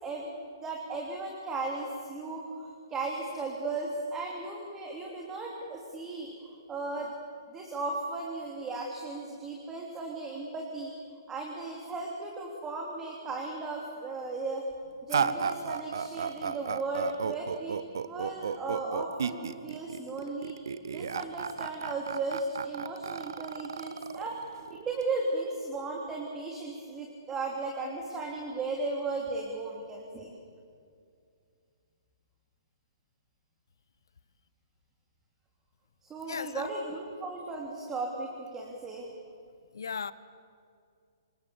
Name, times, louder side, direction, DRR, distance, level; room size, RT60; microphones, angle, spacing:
voice 1, 0.0-6.3 6.7-7.1 7.5-10.9 11.3-14.6 15.0-17.8 18.1-20.5 20.9-30.3 36.0-39.1, right 3 dB, 15° right, 3.2 m, -36 dB
sound 1, 15.1-25.0, right 6 dB, 60° right, 1.2 m, -33 dB
voice 2, 36.2-36.7 39.7-40.1, left 6 dB, 60° left, 0.9 m, -36 dB
27.0 x 26.5 x 7.3 m
figure-of-eight pair, 120°, 2 cm